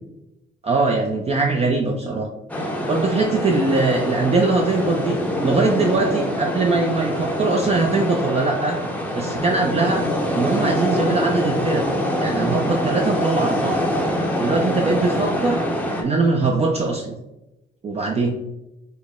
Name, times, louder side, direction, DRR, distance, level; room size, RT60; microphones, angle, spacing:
voice 1, 0.6-2.3 2.9-8.8 9.1-10.0 10.3-11.9 12.2-13.8 14.4-15.6 16.0-17.2 17.8-18.3, right 3 dB, 30° right, 1 dB, 0.5 m, -21 dB
sound 1, 2.5-16.0, equal, 5° left, 0.6 m, -24 dB
4.3 x 2.1 x 3.5 m, 0.93 s
cardioid pair, 90°, 20 cm